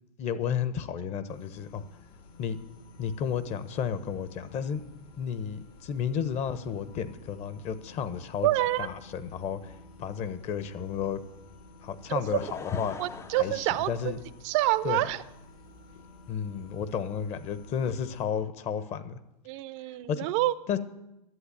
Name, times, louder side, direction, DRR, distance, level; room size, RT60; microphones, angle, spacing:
voice 1, 0.2-1.8 2.4-2.6 3.0-4.8 5.2-8.5 8.8-11.2 11.8-13.0 13.4-14.2 14.8-15.0 16.3-19.2 20.1-20.3 20.7-20.8, left 7 dB, 35° left, 12 dB, 1.0 m, -32 dB
sound 1, 1.3-18.2, left 2 dB, 65° left, 2.2 m, -52 dB
voice 2, 8.4-8.9 12.3-12.4 13.0-13.9 14.4-15.2 19.5-20.5, right 16 dB, 50° right, 15 dB, 0.6 m, -27 dB
Laughter / Crowd, 12.0-14.7 15.4-15.5, left 5 dB, 15° left, 0.5 m, -44 dB
11.0 x 8.2 x 8.6 m, 0.88 s
hypercardioid pair, 120°, 21 cm